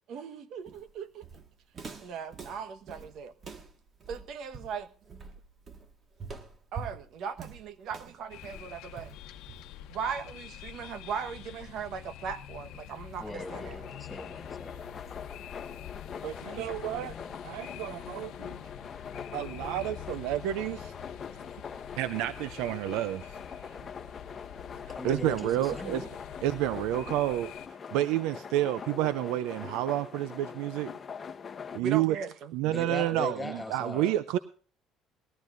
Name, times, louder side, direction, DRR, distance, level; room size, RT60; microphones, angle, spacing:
voice 1, 0.1-1.2 2.0-3.3 4.1-4.9 6.7-9.1 9.9-13.8 16.5-16.7 19.8-19.9 31.8-32.5, right 6 dB, 60° right, 10 dB, 1.2 m, -38 dB
Walk footsteps, 0.7-9.9, right 5 dB, 30° right, 1.7 m, -45 dB
sound 1, 8.3-27.7, left 11 dB, 70° left, 0.9 m, -46 dB
voice 2, 13.2-14.8 17.1-17.3 25.0-26.1 32.6-34.1, left 2 dB, 10° left, 5 dB, 7.5 m, -39 dB
sound 2, 13.4-31.8, left 6 dB, 30° left, 1.0 m, -43 dB
voice 3, 16.2-17.1 17.4-18.6 19.3-20.9 22.0-23.7 24.9-26.0 26.4-27.5 27.9-30.9 31.7-32.2 32.5-34.4, right 14 dB, 85° right, 15 dB, 0.5 m, -30 dB
20.5 x 14.5 x 2.6 m, 0.41 s
cardioid pair, 130°, 0 cm